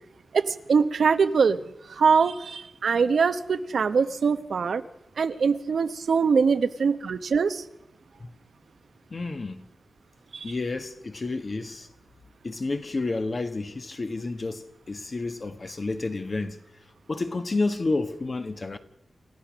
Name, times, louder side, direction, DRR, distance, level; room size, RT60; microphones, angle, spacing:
voice 1, 0.3-1.6 1.9-4.8 5.2-7.6 10.3-10.5, right 5 dB, 85° right, 0.9 m, -23 dB
voice 2, 9.1-9.6 10.4-11.9 12.4-16.6 17.1-18.8, left 3 dB, 40° left, 1.3 m, -30 dB
28.5 x 15.0 x 6.2 m
wide cardioid pair, 120°, 0 cm